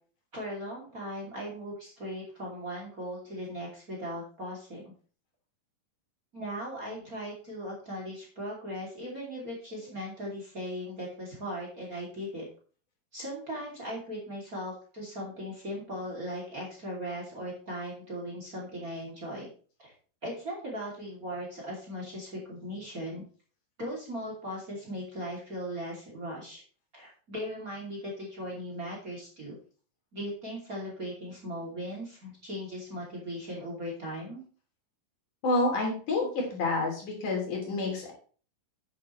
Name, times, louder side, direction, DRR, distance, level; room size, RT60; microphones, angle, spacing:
voice 1, 0.3-4.9 6.3-12.5 13.1-19.5 19.8-19.9 20.2-23.2 23.8-26.6 26.9-29.5 30.1-34.4, equal, 25° right, -2 dB, 2.9 m, -38 dB
voice 2, 35.4-38.1, left 2 dB, 65° left, 0 dB, 4.4 m, -28 dB
10.5 x 9.7 x 3.2 m, 0.41 s
omnidirectional pair, 4.0 m